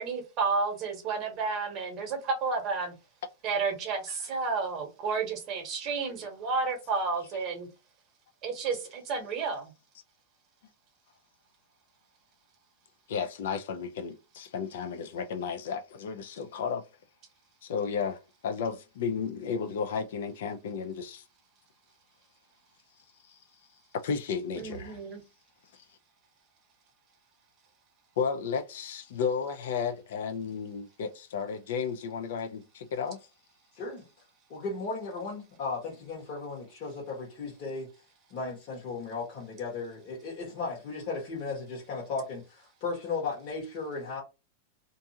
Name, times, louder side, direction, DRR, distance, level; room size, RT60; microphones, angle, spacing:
voice 1, 0.0-2.9 3.4-7.7 8.4-9.7 24.6-25.2, right 4 dB, 35° right, 0.9 m, -31 dB
voice 2, 13.1-16.8 17.6-21.2 23.3-23.4 23.9-25.0 25.7-25.8 28.2-33.2, left 6 dB, 70° left, 0.4 m, -33 dB
voice 3, 33.7-34.1 34.5-37.9 38.3-44.2, left 4 dB, 40° left, 1.2 m, -36 dB
2.6 x 2.3 x 2.8 m
supercardioid pair, 155°, 0 cm